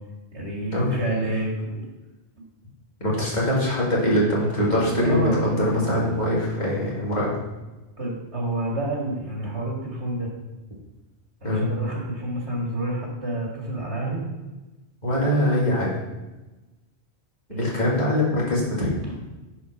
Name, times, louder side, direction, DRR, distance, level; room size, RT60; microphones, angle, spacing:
voice 1, 0.3-1.8 2.4-2.5 5.0-5.5 8.0-10.3 11.4-14.2 17.5-17.7 19.1-19.2, right 2 dB, 85° right, -2 dB, 2.3 m, -29 dB
voice 2, 3.0-7.4 11.4-11.6 15.0-16.0 17.6-19.0, left 1 dB, 40° left, -6 dB, 2.6 m, -23 dB
sound 1, 4.4-6.6, left 2 dB, 80° left, 1.2 m, -31 dB
10.5 x 4.7 x 4.7 m, 1.1 s
omnidirectional pair, 1.1 m